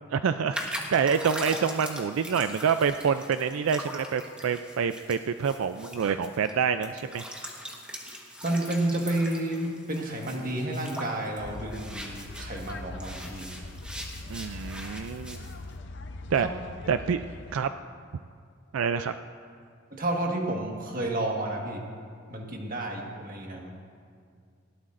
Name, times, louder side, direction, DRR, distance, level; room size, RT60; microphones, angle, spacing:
voice 1, 0.1-7.2 14.3-15.5 16.3-16.5 16.9-17.2 17.5-17.7 18.7-19.1, right 6 dB, 85° right, 10 dB, 0.4 m, -27 dB
sound 1, 0.5-12.7 13.0-15.5, equal, 5° right, 1.2 m, -41 dB
voice 2, 8.4-13.5 16.4-16.5 19.9-21.8 22.3-23.8, right 1 dB, 40° right, 0 dB, 1.6 m, -31 dB
sound 2, 11.4-17.6, left 2 dB, 55° left, 0.6 m, -41 dB
19.5 x 17.0 x 2.6 m, 2.2 s
head